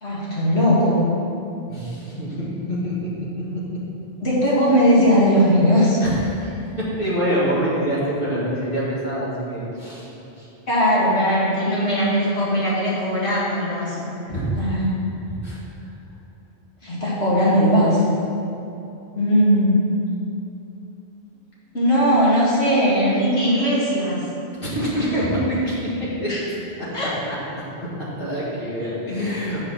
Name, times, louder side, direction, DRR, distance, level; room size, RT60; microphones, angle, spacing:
voice 1, 0.0-1.0 4.2-6.0 10.7-14.3 14.6-15.0 16.8-18.1 19.1-19.8 21.7-24.3 26.3-26.4 26.9-27.2, equal, 90° left, -7 dB, 2.2 m, -19 dB
voice 2, 1.7-2.9 6.0-10.1 10.4-10.5 14.3-14.5 15.4-15.9 24.6-26.3 26.8-26.9 27.3-27.4 28.2-29.7, equal, 55° left, -8 dB, 2.0 m, -25 dB
6.4 x 4.7 x 6.2 m, 2.8 s
omnidirectional pair, 1.1 m